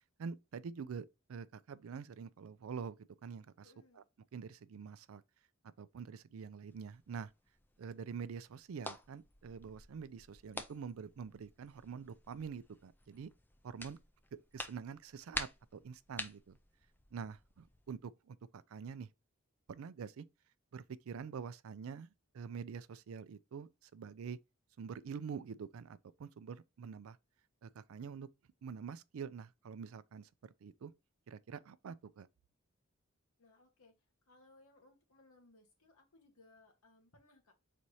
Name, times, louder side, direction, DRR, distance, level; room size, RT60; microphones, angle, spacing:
voice 1, 0.2-3.7 4.0-4.1 4.3-5.2 5.8-7.3 7.8-13.3 13.6-14.0 14.5-16.6 17.1-19.1 19.7-20.3 20.7-24.4 24.8-27.2 27.6-28.3 28.6-30.9 31.3-32.3, right 6 dB, 80° right, 0.4 m, -46 dB
voice 2, 3.6-4.1 33.4-37.5, left 2 dB, 90° left, 1.4 m, -65 dB
sound 1, 6.7-18.0, left 2 dB, 10° left, 0.4 m, -49 dB
4.2 x 2.7 x 4.7 m
head